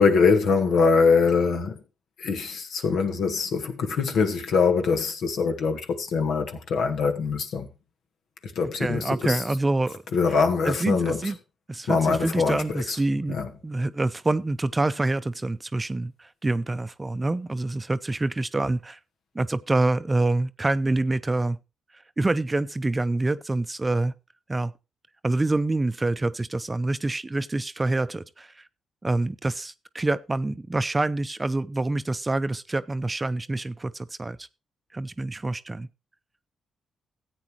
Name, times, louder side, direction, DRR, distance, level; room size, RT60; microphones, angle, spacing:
voice 1, 0.0-1.8 2.2-7.7 8.4-9.4 10.1-11.3 11.9-13.0 13.3-13.5, left 5 dB, 75° left, 1.4 m, -23 dB
voice 2, 8.8-10.0 10.7-11.4 11.7-13.3 13.6-19.0 19.3-21.6 22.2-24.1 24.5-24.7 25.2-28.6 29.0-34.4 34.9-35.9, right 2 dB, 25° right, 0.6 m, -26 dB
14.5 x 8.5 x 3.1 m
supercardioid pair, 50°, 0 cm